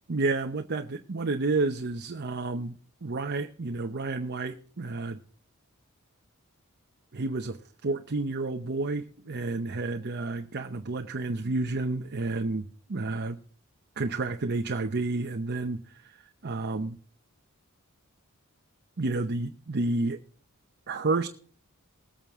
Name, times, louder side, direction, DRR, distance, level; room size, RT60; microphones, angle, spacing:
voice 1, 0.1-5.2 7.1-13.4 14.0-17.0 19.0-20.2 20.9-21.3, right 3 dB, 50° right, 0.7 m, -30 dB
20.0 x 8.8 x 3.6 m
head